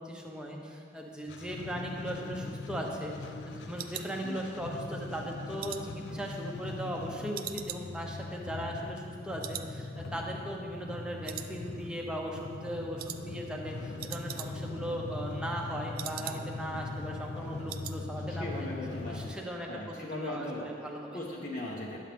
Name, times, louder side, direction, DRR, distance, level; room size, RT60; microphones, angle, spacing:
voice 1, 0.0-3.1 3.5-18.7 19.1-21.2, equal, 5° right, -1 dB, 0.8 m, -38 dB
sound 1, 1.3-19.4, left 2 dB, 70° left, 0.4 m, -41 dB
sound 2, 2.1-4.8 5.2-7.0 7.3-9.1 9.4-9.8 10.0-10.1 10.6-11.0 11.2-12.0 12.3-12.6 13.0-13.2 13.5-13.6 13.8-14.8 15.1-16.7 17.0-17.1 17.4-18.0 18.3-18.6 18.8-18.9, right 11 dB, 50° right, 0.3 m, -43 dB
voice 2, 18.4-19.2 19.7-20.7 21.1-22.0, left 2 dB, 45° left, -4 dB, 0.8 m, -38 dB
10.5 x 7.4 x 3.4 m, 2.4 s
head